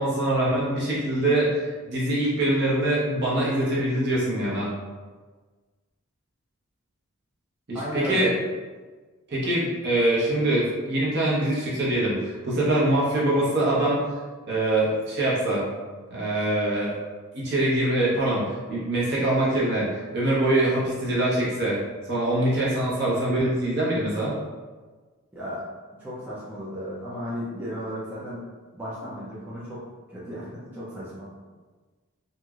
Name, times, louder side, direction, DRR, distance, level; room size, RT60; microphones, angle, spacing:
voice 1, 0.0-4.7 7.7-8.3 9.3-14.0 14.5-15.6 16.1-17.0 17.3-21.8 22.1-24.3, right 1 dB, 50° right, -7 dB, 0.9 m, -24 dB
voice 2, 7.7-8.3 25.3-25.6 26.0-28.4 28.7-29.8 30.1-31.3, equal, 10° right, -10 dB, 0.5 m, -34 dB
3.0 x 2.5 x 2.3 m, 1.4 s
head